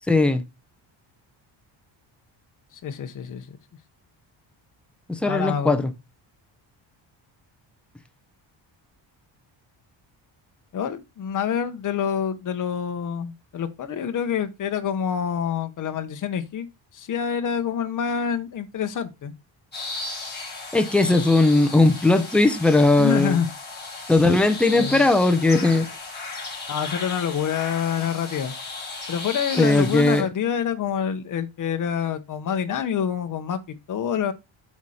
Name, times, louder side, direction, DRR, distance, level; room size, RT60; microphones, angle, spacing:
voice 1, 0.1-0.4 5.1-5.9 20.7-23.4 24.1-25.9 29.6-30.3, left 2 dB, ahead, 0.6 m, -18 dB
voice 2, 2.7-3.6 5.2-5.9 10.7-16.7 16.9-19.3 23.0-23.5 24.7-25.1 26.7-28.5 29.1-34.3, left 8 dB, 40° left, 0.9 m, -27 dB
sound 1, 19.7-30.2, left 3 dB, 20° left, 3.4 m, -35 dB
8.2 x 4.3 x 4.9 m
cardioid pair, 170°, 46 cm